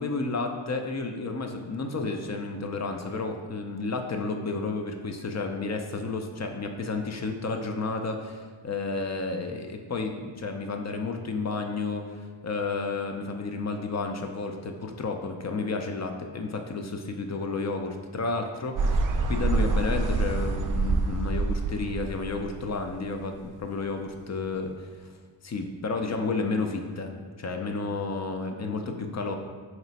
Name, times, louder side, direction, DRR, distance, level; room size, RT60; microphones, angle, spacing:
voice 1, 0.0-24.7 25.0-25.1 25.4-29.3, left 3 dB, 35° left, 4 dB, 0.4 m, -31 dB
sound 1, 18.8-23.1, right 3 dB, 45° right, 0.4 m, -26 dB
3.2 x 3.0 x 4.0 m, 1.5 s
cardioid pair, 50°, 50 cm